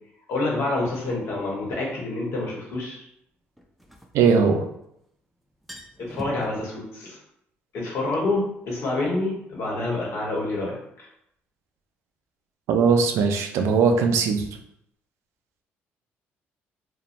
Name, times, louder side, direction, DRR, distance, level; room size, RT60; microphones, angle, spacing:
voice 1, 0.3-3.0 6.0-7.2 7.7-11.1, left 2 dB, 70° left, -3 dB, 1.0 m, -27 dB
sound 1, 1.1-1.2 3.6-4.9 5.2-5.3 5.5-6.5, equal, ahead, 0.3 m, -41 dB
voice 2, 4.1-4.7 12.7-14.5, right 5 dB, 80° right, 5 dB, 0.4 m, -19 dB
2.9 x 2.1 x 2.5 m, 0.76 s
cardioid pair, 105°, 5 cm